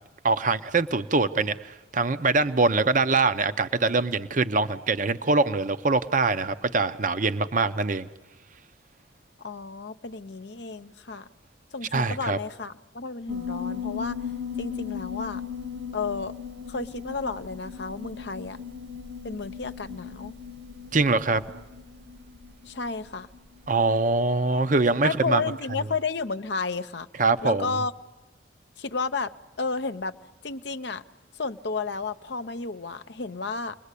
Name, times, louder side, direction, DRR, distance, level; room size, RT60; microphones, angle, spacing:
voice 1, 0.2-8.1 11.9-12.4 20.9-21.4 23.7-25.4 27.2-27.7, right 3 dB, 40° right, 11 dB, 0.8 m, -23 dB
voice 2, 9.4-11.3 11.7-14.2 14.6-15.4 15.9-16.3 16.7-18.6 19.2-20.3 22.7-23.3 25.0-27.1 27.4-27.9 28.8-29.3 29.6-30.1 30.4-31.0 31.4-33.8, left 4 dB, 60° left, 9 dB, 0.8 m, -32 dB
Piano, 13.3-24.0, left 7 dB, 70° right, 2.0 m, -37 dB
30.0 x 21.5 x 8.4 m, 1.1 s
head